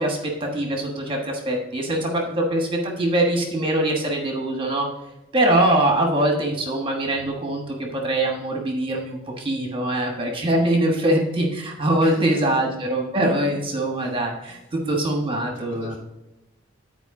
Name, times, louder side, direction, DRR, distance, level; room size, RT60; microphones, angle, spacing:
voice 1, 0.0-4.9 5.3-16.0, right 1 dB, 25° right, 1 dB, 1.3 m, -23 dB
voice 2, 2.1-2.5 12.0-12.6 15.0-16.0, left 2 dB, 60° left, -3 dB, 2.9 m, -40 dB
10.0 x 4.6 x 4.8 m, 0.95 s
head